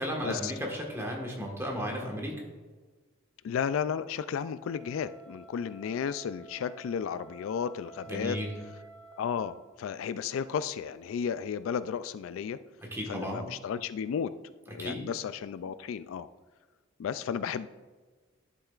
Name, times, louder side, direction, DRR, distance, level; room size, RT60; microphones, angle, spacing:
voice 1, 0.0-2.4 8.1-8.5 12.8-13.4 14.8-15.0, equal, 15° right, -1 dB, 1.4 m, -34 dB
voice 2, 3.4-8.4 9.2-12.6 13.1-14.3 14.7-16.3 17.0-17.7, left 7 dB, 80° left, 15 dB, 0.3 m, -33 dB
Wind instrument woodwind instrument, 4.6-9.6, right 3 dB, 5° left, 2.3 m, -52 dB
11.0 x 6.8 x 2.4 m, 1.3 s
head